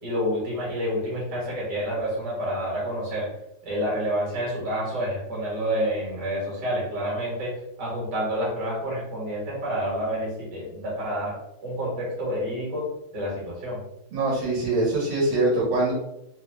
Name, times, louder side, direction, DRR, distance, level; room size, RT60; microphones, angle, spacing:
voice 1, 0.0-3.3 3.6-13.8, equal, 50° right, -5 dB, 1.9 m, -29 dB
voice 2, 14.1-15.9, right 2 dB, 80° right, -6 dB, 2.1 m, -23 dB
4.3 x 2.3 x 3.3 m, 0.83 s
omnidirectional pair, 2.4 m